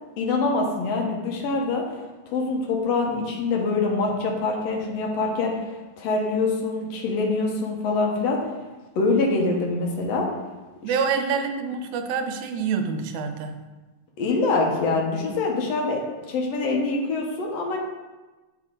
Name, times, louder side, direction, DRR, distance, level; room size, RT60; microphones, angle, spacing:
voice 1, 0.2-1.8 2.3-5.5 6.0-8.4 9.0-10.3 10.8-11.0 14.2-16.0 16.3-17.8, left 3 dB, 70° left, 0 dB, 1.8 m, -24 dB
voice 2, 10.8-13.6, right 5 dB, 80° right, 6 dB, 1.9 m, -26 dB
6.5 x 4.9 x 3.7 m, 1.2 s
omnidirectional pair, 3.4 m